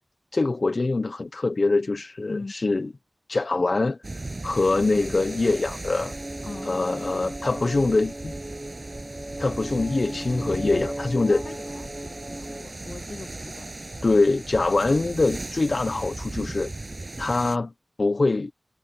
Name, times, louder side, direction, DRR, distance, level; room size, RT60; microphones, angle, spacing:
voice 1, 0.3-2.9 3.3-4.0 4.4-6.1 6.6-8.3 9.4-11.4 14.0-16.7 17.2-17.7 18.0-18.5, left 3 dB, 70° left, 0.8 m, -24 dB
sound 1, 4.0-17.6, right 2 dB, 50° right, 7.5 m, -37 dB
sound 2, 6.0-12.6, right 1 dB, 25° right, 3.2 m, -36 dB
voice 2, 6.4-7.0 11.3-13.7, left 3 dB, 85° left, 1.6 m, -40 dB
wide cardioid pair, 45°, 0 cm